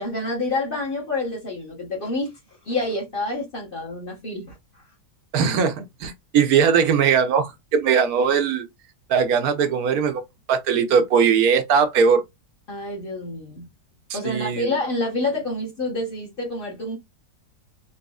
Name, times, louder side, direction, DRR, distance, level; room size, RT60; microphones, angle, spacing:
voice 1, 0.0-2.4 2.6-4.8 12.7-13.7 14.1-17.0, left 2 dB, 35° left, 1.3 m, -28 dB
voice 2, 5.3-8.6 9.1-10.2 10.5-12.2 14.1-14.7, right 6 dB, 70° right, 1.1 m, -20 dB
4.1 x 3.0 x 2.3 m
omnidirectional pair, 1.8 m